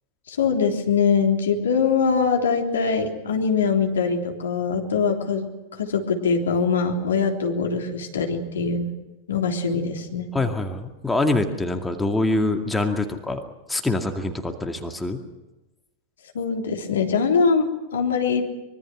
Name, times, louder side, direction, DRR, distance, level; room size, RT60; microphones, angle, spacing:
voice 1, 0.3-5.5 5.8-8.9 9.3-10.3 16.3-18.4, left 5 dB, 65° left, 2 dB, 3.5 m, -22 dB
voice 2, 10.3-13.4 13.7-15.2, left 2 dB, 5° left, 4 dB, 2.2 m, -24 dB
25.0 x 23.5 x 6.3 m, 1.1 s
figure-of-eight pair, 90°, 0 cm